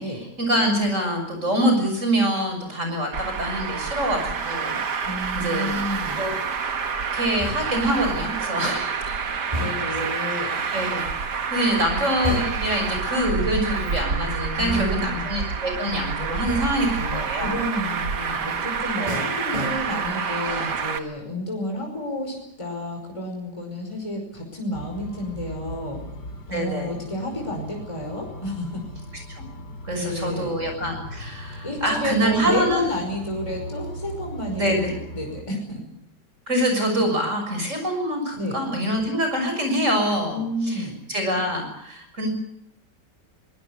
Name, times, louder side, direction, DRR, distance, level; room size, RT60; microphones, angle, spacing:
voice 1, 0.0-4.8 5.3-5.8 6.0-6.3 7.1-9.2 9.9-11.0 11.5-17.6 19.0-19.2 26.5-26.9 29.4-29.5 29.8-32.8 34.5-34.9 36.5-42.3, equal, 45° right, 4 dB, 7.0 m, -25 dB
Traffic noise roadway noise, 3.1-21.0, right 5 dB, 70° right, 2.2 m, -28 dB
voice 2, 5.0-6.2 9.5-10.5 14.6-15.3 17.4-26.0 26.5-28.8 29.9-30.6 31.6-35.8 38.4-38.6 40.3-40.9, left 1 dB, 15° left, 1 dB, 5.3 m, -30 dB
sound 1, 7.4-8.0 9.5-10.1 12.2-12.9 14.7-15.2 16.5-16.9 19.1-20.2 20.6-20.9, equal, 20° right, 7.2 m, -32 dB
sound 2, 24.7-35.4, equal, 65° left, 3.7 m, -39 dB
24.0 x 19.5 x 8.3 m, 0.76 s
omnidirectional pair, 1.9 m